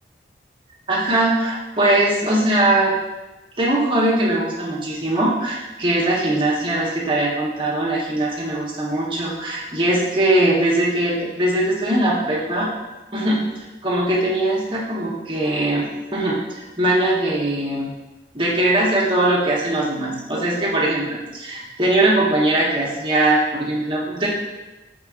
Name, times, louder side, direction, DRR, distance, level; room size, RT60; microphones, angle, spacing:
voice 1, 0.9-2.9 3.6-12.7 13.1-13.4 13.8-17.9 18.3-24.3, right 1 dB, 25° right, -6 dB, 0.8 m, -20 dB
4.8 x 3.7 x 2.4 m, 1.1 s
head